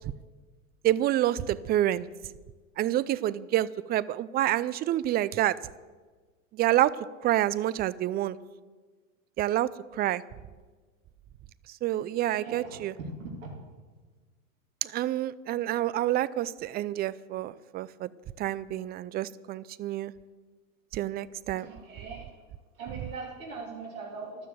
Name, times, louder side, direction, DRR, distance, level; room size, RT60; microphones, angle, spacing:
voice 1, 0.8-2.1 2.8-5.6 6.5-7.0 7.2-8.4 9.4-10.2 11.8-12.9 14.8-18.1 18.4-20.1 20.9-21.7, right 13 dB, 25° right, 19 dB, 0.5 m, -28 dB
voice 2, 12.3-13.5 21.6-22.3 22.8-24.5, right 3 dB, 75° right, 0 dB, 2.8 m, -40 dB
12.5 x 12.5 x 7.8 m, 1.4 s
hypercardioid pair, 105°, 41 cm